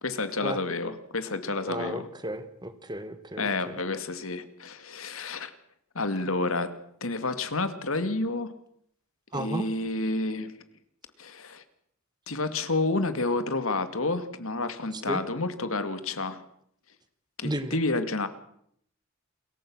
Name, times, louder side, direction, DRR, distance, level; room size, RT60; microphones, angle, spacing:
voice 1, 0.0-2.1 3.4-5.5 5.9-6.7 7.0-8.5 9.3-10.5 11.2-11.6 12.3-16.4 17.4-18.3, left 2 dB, 75° left, 11 dB, 2.3 m, -30 dB
voice 2, 1.7-3.8 9.3-9.7 14.9-15.2 17.4-17.8, right 1 dB, 20° right, 10 dB, 1.8 m, -34 dB
28.5 x 22.5 x 6.3 m, 0.70 s
head